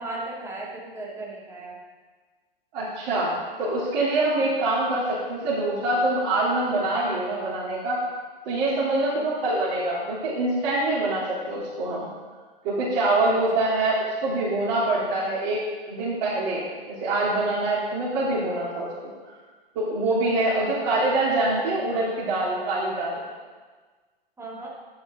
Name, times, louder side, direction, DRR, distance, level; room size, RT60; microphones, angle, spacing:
voice 1, 0.0-1.8 4.4-4.5 9.1-9.3 13.2-13.3 13.5-13.9 20.6-20.9 24.4-24.7, right 2 dB, 10° right, -4 dB, 2.6 m, -37 dB
voice 2, 2.7-8.0 8.4-12.1 12.6-16.6 17.0-18.9 19.7-23.2, right 2 dB, 50° right, -9 dB, 3.4 m, -25 dB
12.0 x 9.3 x 3.8 m, 1.4 s
hypercardioid pair, 115°, 29 cm